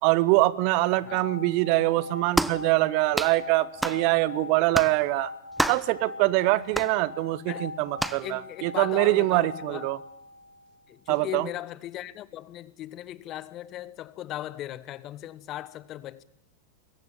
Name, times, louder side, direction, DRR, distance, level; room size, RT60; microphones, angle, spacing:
voice 1, 0.0-5.3 5.7-10.0 11.1-11.5, right 19 dB, 45° right, 0.9 m, -24 dB
sound 1, 0.7-10.9, left 3 dB, 80° left, 2.0 m, -42 dB
sound 2, 2.3-2.6 3.1-3.4 3.8-4.0 4.7-5.0 5.6-5.9 6.7-6.9 8.0-8.2, right 1 dB, 5° right, 0.8 m, -28 dB
voice 2, 8.2-9.9 10.9-16.2, left 13 dB, 35° left, 1.1 m, -38 dB
22.0 x 17.5 x 9.0 m
figure-of-eight pair, 90°, 0 cm